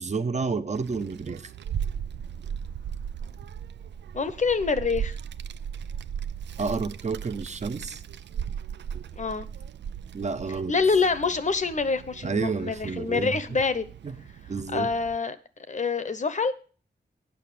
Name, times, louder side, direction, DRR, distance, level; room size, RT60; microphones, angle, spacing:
voice 1, 0.0-1.4 6.6-8.0 8.9-9.0 10.1-10.7 12.2-13.4 14.0-14.2 14.5-14.9, right 4 dB, 40° right, 0.7 m, -30 dB
Child speech kid speaking, 0.7-15.2, right 8 dB, 90° right, 0.4 m, -37 dB
voice 2, 4.1-5.2 9.2-9.5 10.7-13.8 14.7-15.4 15.7-16.5, left 4 dB, 45° left, 0.9 m, -26 dB
8.6 x 5.8 x 7.6 m
wide cardioid pair, 105°, 18 cm